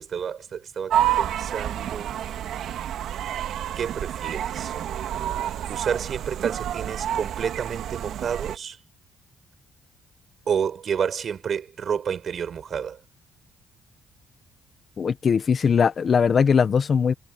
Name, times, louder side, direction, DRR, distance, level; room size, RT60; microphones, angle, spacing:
voice 1, 0.0-2.1 3.7-4.8 5.7-8.8 10.5-13.0, right 7 dB, 55° right, 6.2 m, -30 dB
sound 1, 0.9-8.6, right 11 dB, 75° right, 2.4 m, -29 dB
voice 2, 15.0-17.1, left 6 dB, 45° left, 1.4 m, -20 dB
cardioid pair, 90°, 0 cm